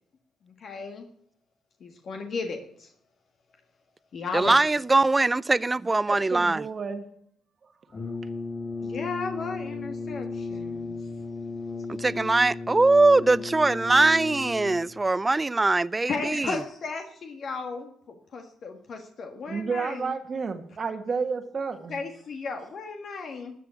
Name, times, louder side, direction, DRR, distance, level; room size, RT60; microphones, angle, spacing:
voice 1, 0.6-1.1 1.8-2.9 4.1-4.6 8.8-11.2 16.1-20.1 21.9-23.5, left 4 dB, 55° left, 1.6 m, -35 dB
voice 2, 4.3-6.6 11.9-16.6, right 3 dB, 20° right, 0.4 m, -22 dB
voice 3, 6.1-7.0 19.5-22.0, right 5 dB, 45° right, 1.5 m, -31 dB
Brass instrument, 7.9-15.1, left 3 dB, 35° left, 1.4 m, -35 dB
13.0 x 6.8 x 8.2 m
cardioid pair, 90°, 0 cm